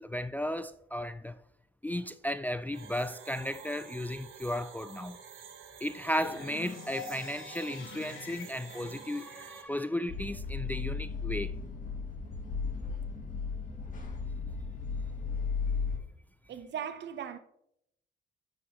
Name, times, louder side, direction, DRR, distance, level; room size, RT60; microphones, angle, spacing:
voice 1, 0.0-1.4 1.8-5.2 5.8-11.5, left 1 dB, 10° left, 0.3 m, -35 dB
sound 1, 2.7-9.6, right 7 dB, 85° right, 1.4 m, -49 dB
sound 2, 6.1-10.1, left 6 dB, 75° left, 1.5 m, -46 dB
sound 3, 10.1-16.0, left 5 dB, 40° left, 2.3 m, -35 dB
voice 2, 16.5-17.4, right 8 dB, 65° right, 1.0 m, -38 dB
9.9 x 7.7 x 3.1 m
cardioid pair, 90°, 20 cm